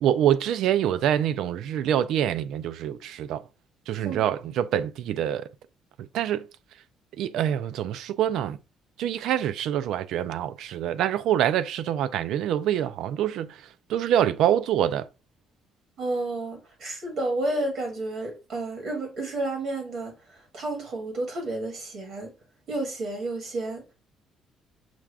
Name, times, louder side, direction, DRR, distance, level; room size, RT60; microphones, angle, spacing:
voice 1, 0.0-3.4 3.9-5.5 6.0-6.5 7.2-8.6 9.0-13.6 13.9-15.1, right 10 dB, 65° right, 0.4 m, -25 dB
voice 2, 16.0-22.3 22.7-23.9, right 2 dB, 45° right, 1.8 m, -31 dB
6.0 x 2.4 x 3.4 m
cardioid pair, 170°, 0 cm